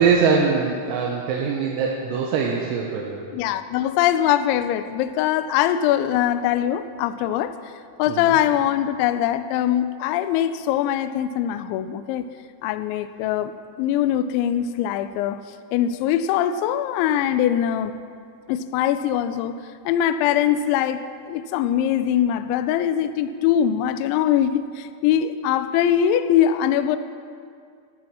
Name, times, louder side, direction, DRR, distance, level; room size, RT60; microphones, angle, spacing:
voice 1, 0.0-3.2 8.1-8.3, right 5 dB, 85° right, -1 dB, 3.9 m, -22 dB
voice 2, 3.3-7.5 8.0-12.3 12.6-13.5 13.8-15.4 15.7-17.9 18.5-19.6 19.9-21.0 21.3-27.0, left 10 dB, 85° left, 11 dB, 2.7 m, -22 dB
14.5 x 13.5 x 6.3 m, 2.2 s
omnidirectional pair, 6.0 m